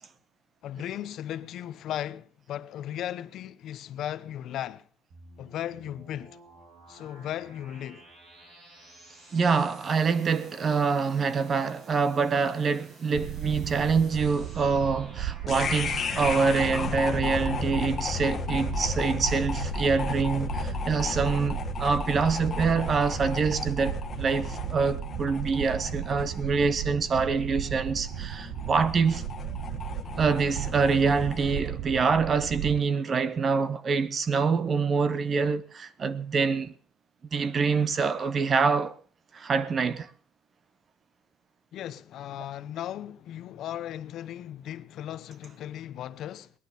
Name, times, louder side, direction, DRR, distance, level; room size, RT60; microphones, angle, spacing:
voice 1, 0.6-4.9 5.4-6.4 6.9-8.0 41.7-46.5, left 11 dB, 50° left, 0.7 m, -36 dB
sound 1, 5.1-17.0, right 1 dB, 45° right, 6.4 m, -53 dB
voice 2, 9.3-29.2 30.2-36.7 37.3-39.0 39.3-40.1, right 5 dB, 25° right, 0.7 m, -26 dB
sound 2, 13.1-32.8, right 13 dB, 70° right, 0.6 m, -36 dB
sound 3, 15.5-31.7, left 5 dB, 25° left, 1.4 m, -34 dB
19.0 x 11.0 x 5.5 m
cardioid pair, 180°, 0 cm